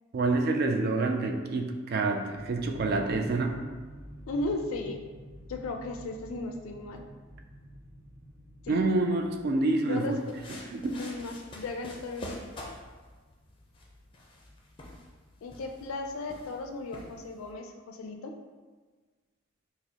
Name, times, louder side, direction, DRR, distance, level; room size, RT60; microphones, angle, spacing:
voice 1, 0.1-3.6 8.7-10.2 10.5-11.0, right 2 dB, 50° right, 4 dB, 0.3 m, -27 dB
sound 1, 2.3-9.7, equal, 10° right, 1.0 m, -47 dB
voice 2, 4.3-5.0 5.5-7.0 8.6-8.8 9.8-10.3 10.9-12.4 15.4-18.3, left 2 dB, 85° left, 4 dB, 0.4 m, -36 dB
sound 2, 10.0-17.5, left 1 dB, 25° left, 0.5 m, -47 dB
4.8 x 2.0 x 2.8 m, 1.4 s
head